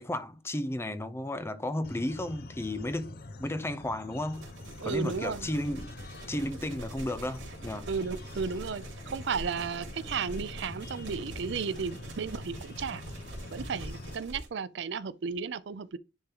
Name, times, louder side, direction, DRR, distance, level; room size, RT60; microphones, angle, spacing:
voice 1, 0.0-3.1 3.4-4.5 4.8-5.9 6.3-7.9, left 1 dB, 15° left, 0.5 m, -33 dB
sound 1, 1.8-14.2, left 2 dB, 55° left, 0.9 m, -45 dB
sound 2, 4.3-14.5, right 1 dB, 85° right, 2.4 m, -45 dB
voice 2, 4.8-5.5 7.9-13.0 13.5-16.0, right 5 dB, 70° right, 0.5 m, -34 dB
10.0 x 3.8 x 2.9 m
head